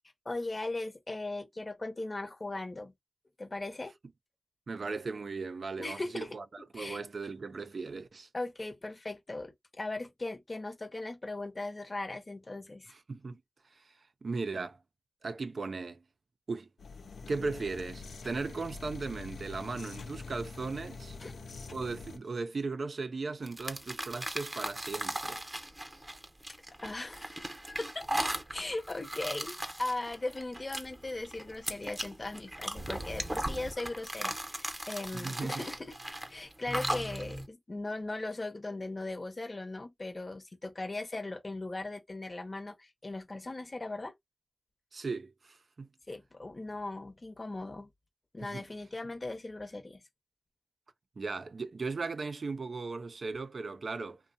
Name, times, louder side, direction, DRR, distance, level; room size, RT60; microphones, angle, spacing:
voice 1, 0.2-2.9 3.4-3.9 5.8-6.3 6.7-7.1 8.3-12.9 21.2-21.4 26.8-28.0 28.5-35.9 36.3-44.1 46.1-47.9 48.3-50.0, left 2 dB, 40° left, 0.8 m, -38 dB
voice 2, 4.7-8.3 12.9-13.4 13.7-14.8 15.2-16.0 16.5-16.7 17.2-21.2 21.7-25.4 35.1-35.6 44.9-45.9 48.4-48.6 51.2-54.2, right 4 dB, 65° right, 0.4 m, -37 dB
sound 1, 16.8-22.2, left 4 dB, 80° left, 0.4 m, -45 dB
sound 2, 23.5-37.5, right 1 dB, 20° right, 0.7 m, -38 dB
2.7 x 2.0 x 2.5 m
cardioid pair, 60°, 0 cm